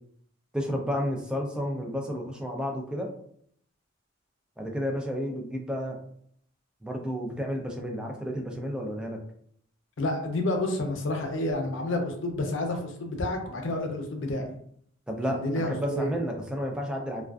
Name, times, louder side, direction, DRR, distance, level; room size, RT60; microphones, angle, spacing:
voice 1, 0.5-3.1 4.6-6.0 6.8-9.2 15.1-17.2, equal, 5° right, 0 dB, 0.3 m, -31 dB
voice 2, 10.0-14.5 15.3-16.1, left 1 dB, 70° left, 3 dB, 0.5 m, -29 dB
2.4 x 2.3 x 2.3 m, 0.65 s
head